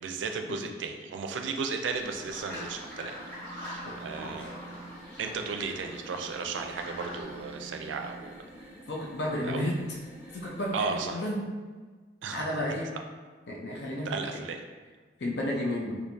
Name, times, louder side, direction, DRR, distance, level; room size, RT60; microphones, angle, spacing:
voice 1, 0.0-3.2 3.5-4.5 5.2-8.3 9.5-9.6 10.7-11.2 12.2-12.4 14.1-14.6, right 4 dB, 90° right, 5 dB, 0.4 m, -34 dB
sound 1, 1.9-11.1, right 1 dB, 5° right, 1.3 m, -49 dB
sound 2, 2.0-7.2, left 1 dB, 10° left, 1.5 m, -44 dB
sound 3, 2.1-4.9 5.4-8.2, right 3 dB, 90° left, 1.3 m, -50 dB
voice 2, 3.8-4.5 8.9-9.8 10.3-11.5 12.3-12.9 13.5-14.4 15.2-16.0, left 1 dB, 65° left, -2 dB, 0.6 m, -32 dB
4.4 x 2.6 x 2.6 m, 1.4 s
head